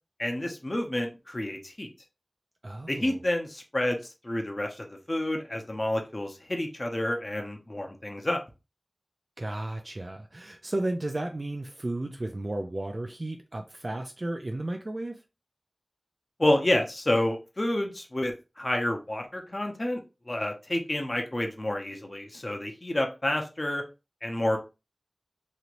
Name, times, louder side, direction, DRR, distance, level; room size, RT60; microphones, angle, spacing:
voice 1, 0.2-1.9 2.9-8.4 16.4-20.0 20.3-23.8 24.2-24.6, left 1 dB, 40° left, 0.8 m, -29 dB
voice 2, 2.6-3.2 9.4-15.2, right 1 dB, 50° right, 0.4 m, -33 dB
3.1 x 2.8 x 2.5 m
wide cardioid pair, 50°, 0 cm